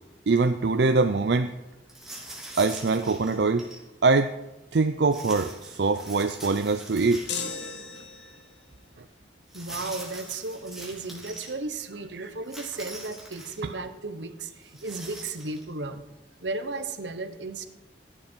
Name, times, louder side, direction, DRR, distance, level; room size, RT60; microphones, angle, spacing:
voice 1, 0.3-1.5 2.6-3.7 4.0-4.3 4.7-7.2 12.1-12.3, right 3 dB, 70° right, 8 dB, 0.5 m, -23 dB
sound 1, 1.9-3.8 5.1-7.7 8.0-8.1 9.5-11.5 12.4-13.7 14.6-15.6, right 1 dB, ahead, 3.4 m, -43 dB
sound 2, 7.3-8.6, left 5 dB, 85° left, 1.5 m, -35 dB
voice 2, 9.5-16.0 16.4-17.7, right 3 dB, 85° right, 10 dB, 1.1 m, -35 dB
16.5 x 10.5 x 4.6 m, 1.0 s
head